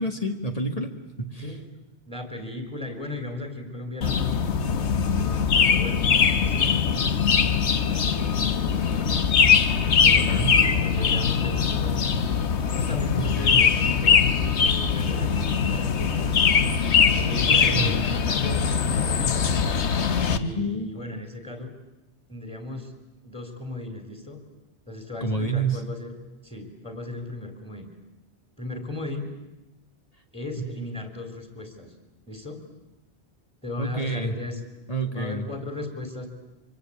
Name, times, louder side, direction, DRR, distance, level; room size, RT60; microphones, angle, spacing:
voice 1, 0.0-1.6 10.3-10.6 13.2-13.6 17.5-18.2 20.3-20.9 25.2-25.8 30.6-30.7 33.8-34.3 34.9-35.5, right 2 dB, 35° left, 4 dB, 2.0 m, -29 dB
voice 2, 2.1-9.3 9.8-12.1 12.6-16.3 17.2-19.5 20.3-21.7 22.3-22.9 23.2-24.4 24.9-26.1 26.4-27.9 28.6-29.3 30.3-31.9 32.2-32.6 33.6-34.6 35.0-36.3, left 2 dB, 5° left, 6 dB, 3.7 m, -37 dB
sound 1, 4.0-20.4, left 6 dB, 85° left, 1.4 m, -22 dB
24.5 x 24.5 x 8.7 m, 0.99 s
omnidirectional pair, 1.1 m